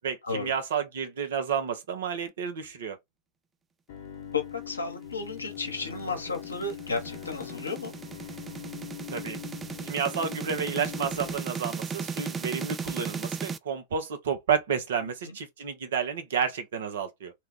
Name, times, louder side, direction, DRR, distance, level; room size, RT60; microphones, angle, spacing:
voice 1, 0.0-3.0 9.1-9.4 9.8-17.3, right 7 dB, 60° right, 0.8 m, -31 dB
Bowed string instrument, 3.9-11.4, left 10 dB, 55° left, 0.9 m, -42 dB
voice 2, 4.3-7.9 15.2-15.4, left 4 dB, 80° left, 0.9 m, -33 dB
sound 1, 5.5-13.6, right 5 dB, 20° right, 0.3 m, -36 dB
2.8 x 2.3 x 3.7 m
figure-of-eight pair, 90°, 0 cm